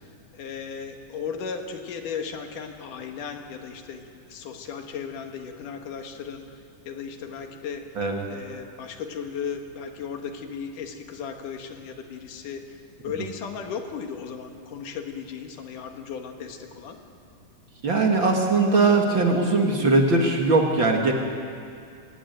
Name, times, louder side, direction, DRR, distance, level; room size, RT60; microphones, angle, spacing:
voice 1, 0.3-6.5 6.9-7.9 8.3-12.8 13.0-17.0, left 6 dB, 80° left, 4 dB, 3.1 m, -36 dB
voice 2, 17.8-21.1, right 3 dB, 40° right, 1 dB, 2.2 m, -20 dB
25.5 x 16.5 x 9.2 m, 2.3 s
omnidirectional pair, 3.7 m